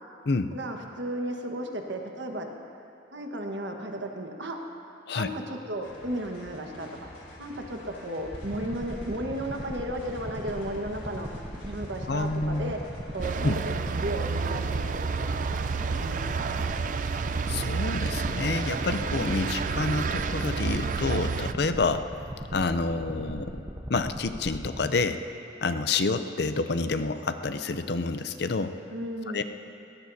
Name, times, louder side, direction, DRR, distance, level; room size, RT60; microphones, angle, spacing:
voice 1, 0.5-2.5 3.1-4.6 5.1-6.9 7.4-11.3 11.6-12.8 13.1-15.0 15.5-16.6 28.9-29.4, right 1 dB, 70° right, 3 dB, 1.4 m, -34 dB
sound 1, 5.8-20.6, left 1 dB, 75° left, 3.2 m, -48 dB
sound 2, 8.3-24.9, equal, 20° right, 0.9 m, -39 dB
voice 2, 12.1-12.7 13.4-13.6 17.5-22.1 22.5-23.6 23.9-25.2 25.6-28.8 29.3-29.4, left 3 dB, 55° left, 10 dB, 0.5 m, -28 dB
sound 3, 13.2-21.5, right 5 dB, 40° right, 0.4 m, -30 dB
21.0 x 18.0 x 2.8 m, 2.7 s
head